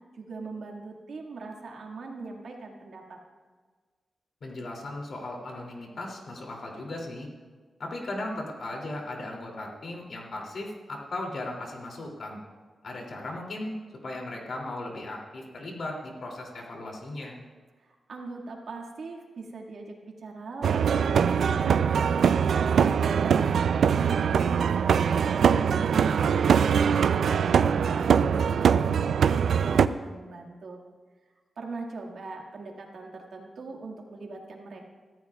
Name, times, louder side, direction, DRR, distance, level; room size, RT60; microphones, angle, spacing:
voice 1, 0.1-3.2 17.8-25.5 26.1-30.8 31.6-34.8, right 3 dB, 75° right, -1 dB, 1.9 m, -41 dB
voice 2, 4.4-7.3 7.8-12.4 12.8-13.7 14.0-17.4 26.1-26.3, left 2 dB, 60° left, -1 dB, 2.8 m, -37 dB
sound 1, 20.6-29.9, right 7 dB, 90° right, 0.4 m, -22 dB
24.0 x 14.0 x 2.4 m, 1.5 s
wide cardioid pair, 140°, 0 cm